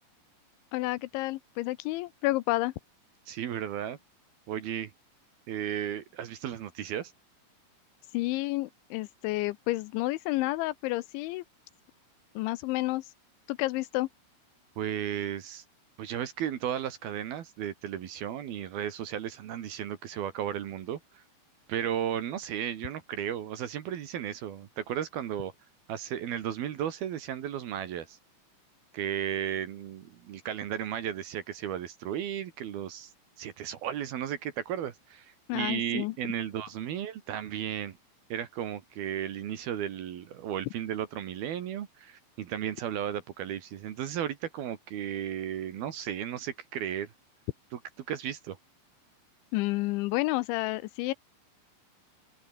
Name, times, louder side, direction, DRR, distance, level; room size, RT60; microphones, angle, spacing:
voice 1, 0.7-2.7 8.1-11.4 12.4-13.1 13.5-14.1 35.5-36.1 49.5-51.1, left 19 dB, 85° left, 2.9 m, -30 dB
voice 2, 3.3-4.0 4.5-4.9 5.5-7.1 14.8-15.6 16.0-21.2 21.7-25.5 25.9-28.2 28.9-33.1 33.4-38.0 38.3-47.1 48.1-48.6, right 10 dB, 60° right, 3.0 m, -34 dB
open air
omnidirectional pair, 5.6 m